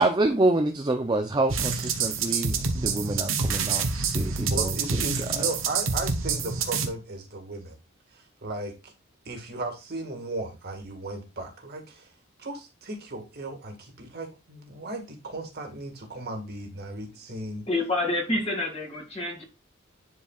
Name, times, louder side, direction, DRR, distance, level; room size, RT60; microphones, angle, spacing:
voice 1, 0.0-5.0, right 2 dB, 20° right, 0.5 m, -26 dB
sound 1, 1.5-6.9, right 5 dB, 70° right, 1.0 m, -27 dB
voice 2, 4.3-7.8 8.1-8.9 9.3-12.1 12.4-17.7, right 2 dB, 50° right, 1.8 m, -36 dB
voice 3, 17.7-19.4, left 2 dB, 30° left, 2.2 m, -28 dB
10.0 x 4.6 x 2.4 m
head